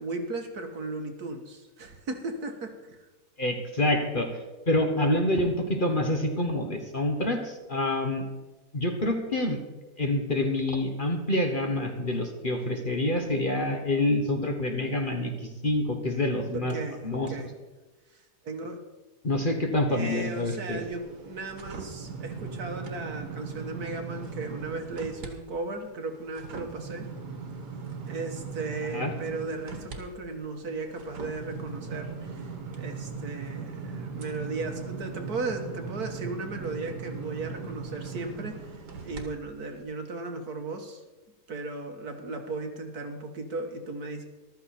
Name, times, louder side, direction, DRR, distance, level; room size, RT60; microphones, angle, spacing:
voice 1, 0.0-3.0 16.5-17.5 18.4-18.8 19.9-27.1 28.1-41.0 41.5-44.2, right 3 dB, 65° right, 4 dB, 1.9 m, -36 dB
voice 2, 3.4-4.3 4.7-8.2 8.7-9.6 10.0-16.7 17.0-17.3 19.2-20.8 28.9-29.1, left 1 dB, 30° left, 3 dB, 1.4 m, -27 dB
sound 1, 20.7-25.3 25.7-39.2 39.7-39.8, right 4 dB, 80° right, 2.2 m, -39 dB
14.5 x 12.5 x 4.4 m, 1.2 s
omnidirectional pair, 1.8 m